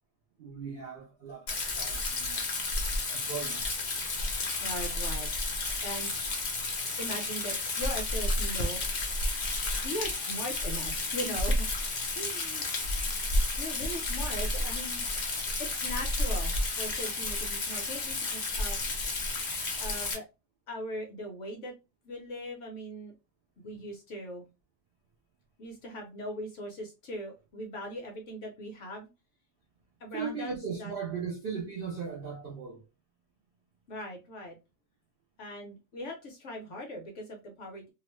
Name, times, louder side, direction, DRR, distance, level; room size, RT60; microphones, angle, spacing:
voice 1, 0.4-2.4 2.8-3.8 23.6-23.8 30.1-32.8, right 6 dB, 75° right, 0.5 m, -38 dB
Rain, 1.5-20.1, left 2 dB, 80° left, 0.4 m, -31 dB
voice 2, 4.6-6.1 7.0-8.8 9.8-11.7 12.1-12.6 13.6-15.0 15.6-19.2 19.8-20.2 20.7-21.7 22.0-23.1 23.6-24.4 25.6-29.1 30.0-30.9 33.9-34.6 35.4-37.9, equal, 60° left, 0.8 m, -40 dB
2.9 x 2.1 x 3.0 m
omnidirectional pair, 1.8 m